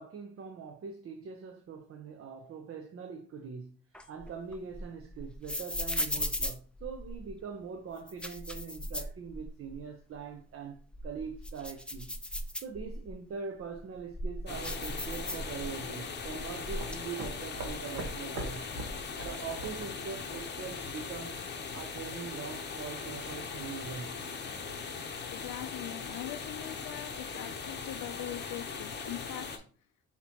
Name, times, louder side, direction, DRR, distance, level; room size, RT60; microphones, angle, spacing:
voice 1, 0.0-12.1 12.6-18.7 19.2-21.4 21.7-24.2 24.9-25.0 27.3-27.4, right 6 dB, 50° right, 0.7 m, -42 dB
sound 1, 3.9-7.4 8.0-9.8 10.1-10.2 10.8-13.1 13.7-15.9 16.2-17.0, left 1 dB, 5° left, 0.4 m, -37 dB
sound 2, 14.5-29.6, left 5 dB, 35° left, 0.8 m, -40 dB
sound 3, 14.8-21.4, right 2 dB, 65° right, 1.3 m, -45 dB
voice 2, 25.3-29.5, left 12 dB, 75° left, 0.5 m, -42 dB
6.0 x 2.9 x 2.9 m
cardioid pair, 90°, 30 cm